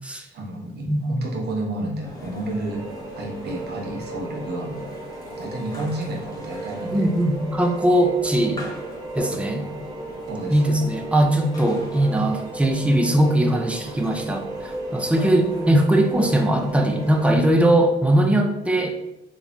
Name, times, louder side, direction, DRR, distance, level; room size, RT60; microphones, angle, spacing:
voice 1, 0.3-2.9 3.2-4.9 5.3-7.1 10.3-10.8, right 1 dB, 55° right, 0 dB, 0.7 m, -30 dB
sound 1, 2.0-17.7, left 1 dB, 20° left, 0.7 m, -41 dB
sound 2, 2.7-17.4, right 2 dB, 20° right, 0.7 m, -35 dB
voice 2, 6.9-8.6 9.2-9.7 10.5-19.0, right 1 dB, 5° right, 3 dB, 0.4 m, -20 dB
3.0 x 2.1 x 2.5 m, 0.88 s
cardioid pair, 90°, 20 cm